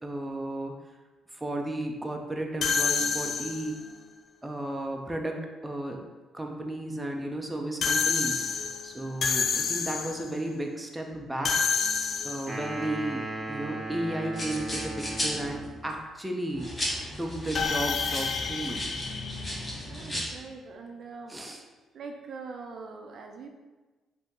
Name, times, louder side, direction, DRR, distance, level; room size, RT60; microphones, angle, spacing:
voice 1, 0.0-0.7 1.3-3.8 4.4-6.0 6.3-11.7 12.2-16.7 17.2-18.9 21.3-21.6, right 1 dB, 10° right, 1 dB, 0.6 m, -34 dB
sound 1, 2.6-3.9 7.8-10.3 11.4-12.7 17.5-20.1, left 5 dB, 55° left, 0.3 m, -29 dB
sound 2, 12.5-15.8, right 2 dB, 35° right, 0.9 m, -37 dB
sound 3, 14.3-15.9 16.5-20.2, equal, 25° left, 1.5 m, -35 dB
voice 2, 19.8-21.4 21.9-23.5, right 4 dB, 65° right, 3 dB, 0.5 m, -42 dB
4.9 x 2.8 x 3.8 m, 1.2 s
cardioid pair, 90°, 0 cm